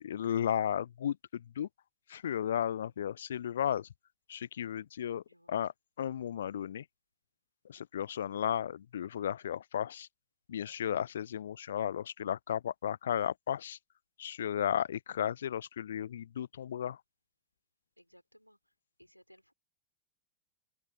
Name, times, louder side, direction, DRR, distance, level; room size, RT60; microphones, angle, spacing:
voice 1, 0.0-1.7 2.1-3.9 4.3-6.9 7.6-10.1 10.5-13.8 14.2-17.0, left 9 dB, 65° left, 0.4 m, -34 dB
voice 2, 18.0-18.7 19.0-19.5, equal, 90° left, 3.6 m, -62 dB
open air
figure-of-eight pair, 90°, 0 cm